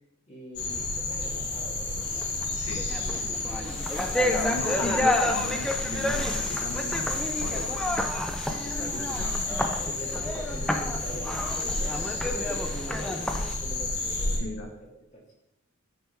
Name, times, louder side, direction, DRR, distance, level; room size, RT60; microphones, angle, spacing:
voice 1, 0.3-2.3 3.0-3.6 3.9-4.4 7.3-7.8 9.8-15.3, equal, 30° left, -4 dB, 2.0 m, -43 dB
sound 1, 0.6-14.4, left 2 dB, 55° left, 1.2 m, -31 dB
sound 2, 2.2-2.5 2.7-13.5, left 1 dB, 5° left, 0.4 m, -30 dB
voice 2, 4.2-7.8 8.5-9.4 14.4-14.7, left 2 dB, 80° left, 3 dB, 0.6 m, -36 dB
8.7 x 3.5 x 4.4 m, 0.92 s
head